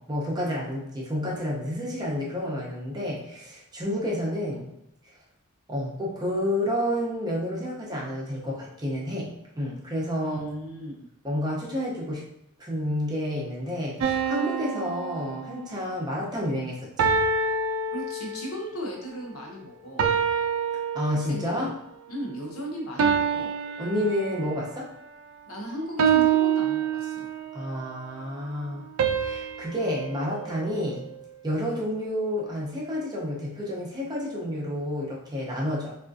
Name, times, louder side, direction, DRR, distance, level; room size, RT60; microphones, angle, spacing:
voice 1, 0.1-4.7 5.7-10.5 11.2-12.2 12.6-17.2 20.9-21.7 23.8-24.9 27.5-28.8 29.2-31.1 31.4-35.9, left 1 dB, 20° right, -4 dB, 0.6 m, -30 dB
voice 2, 10.2-11.1 17.9-20.0 21.3-21.7 22.1-23.5 25.5-27.3, equal, 85° left, -1 dB, 0.8 m, -36 dB
sound 1, 14.0-15.9 17.0-18.6 20.0-21.6 23.0-24.7 26.0-27.6 29.0-31.3, right 6 dB, 80° right, 0.3 m, -27 dB
3.5 x 2.4 x 2.5 m, 0.82 s
head